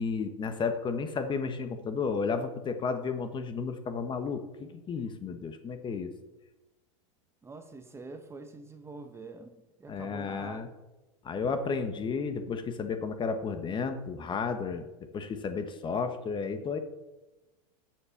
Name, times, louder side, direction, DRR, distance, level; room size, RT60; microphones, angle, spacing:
voice 1, 0.0-6.1 9.9-10.7 11.2-14.9 15.1-16.8, left 5 dB, 25° left, 8 dB, 1.3 m, -32 dB
voice 2, 7.4-10.7, right 3 dB, 15° right, 7 dB, 1.1 m, -45 dB
13.5 x 7.7 x 5.8 m, 1.1 s
hypercardioid pair, 110°, 18 cm